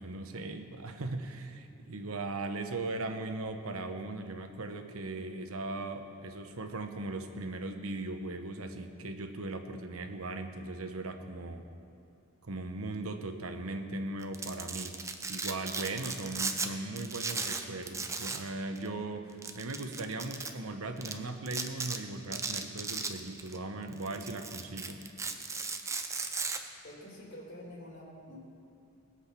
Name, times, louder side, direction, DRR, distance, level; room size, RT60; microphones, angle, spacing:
voice 1, 0.0-11.6 12.4-15.0 15.3-25.0, right 2 dB, 80° right, 6 dB, 1.0 m, -38 dB
Domestic sounds home sounds, 14.2-16.7 17.0-18.5 18.7-18.9 19.4-20.5 21.0-21.1 21.5-22.0 22.3-23.6 23.9-26.6, right 4 dB, 15° right, 0.6 m, -36 dB
voice 2, 26.8-28.4, left 1 dB, 55° left, -3 dB, 3.1 m, -47 dB
20.0 x 7.9 x 5.9 m, 2.5 s
head